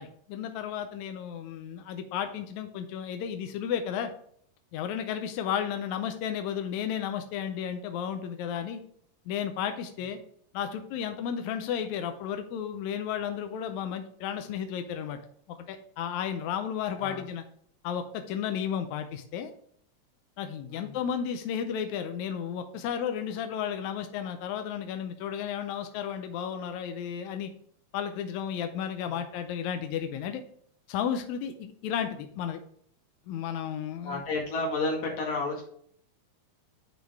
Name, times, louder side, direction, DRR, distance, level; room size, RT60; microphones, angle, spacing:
voice 1, 0.0-4.1 4.7-8.8 9.3-10.2 10.5-15.2 15.5-17.4 17.8-19.5 20.4-27.5 27.9-30.4 30.9-32.6 33.3-34.2, left 8 dB, 85° left, 7 dB, 1.7 m, -33 dB
voice 2, 20.7-21.0 34.0-35.6, left 2 dB, 55° left, -1 dB, 2.7 m, -31 dB
10.0 x 3.9 x 3.5 m, 0.63 s
omnidirectional pair, 3.9 m